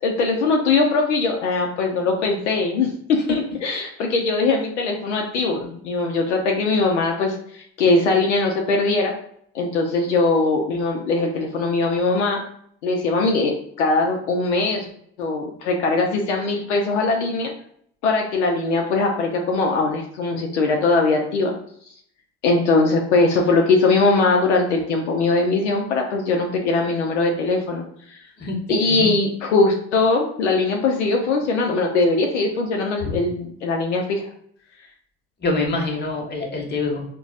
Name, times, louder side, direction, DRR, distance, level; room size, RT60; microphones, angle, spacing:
voice 1, 0.0-9.1 9.5-12.4 12.8-14.9 15.2-17.5 18.0-21.5 22.4-27.8 28.1-28.2 28.7-34.2, left 3 dB, 90° left, 1 dB, 0.5 m, -21 dB
voice 2, 28.4-29.1 33.0-33.2 35.4-37.0, left 3 dB, 30° left, 1 dB, 1.0 m, -26 dB
3.9 x 2.2 x 2.4 m, 0.67 s
hypercardioid pair, 70°, 34 cm